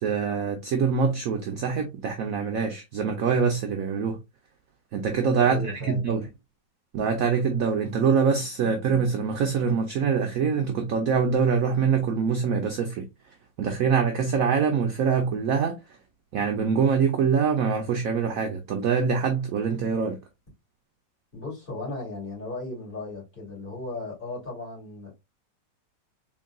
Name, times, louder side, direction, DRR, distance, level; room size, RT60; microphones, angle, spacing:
voice 1, 0.0-4.2 4.9-6.2 6.9-13.0 13.6-15.7 16.3-20.2, right 6 dB, 70° right, 0.9 m, -24 dB
voice 2, 5.4-6.1 21.3-25.1, left 2 dB, 30° left, 2.6 m, -36 dB
3.7 x 3.7 x 2.2 m
omnidirectional pair, 2.0 m